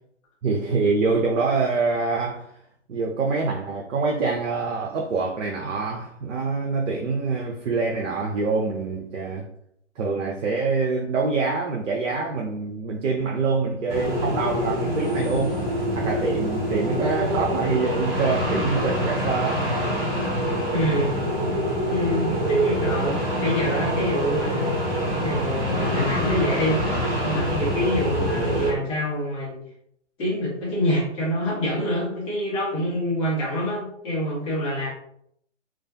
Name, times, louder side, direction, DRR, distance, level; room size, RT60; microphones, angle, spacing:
voice 1, 0.4-2.5 2.9-9.5 10.0-15.6 15.9-19.7 22.0-22.2, right 4 dB, 80° right, 0.5 m, -25 dB
sound 1, 13.9-28.7, equal, 10° right, 0.5 m, -25 dB
voice 2, 20.7-21.1 21.9-24.8 25.2-26.8 27.2-29.6 30.2-34.9, equal, 15° left, 0.8 m, -26 dB
2.3 x 2.2 x 2.6 m
figure-of-eight pair, 130°, 37 cm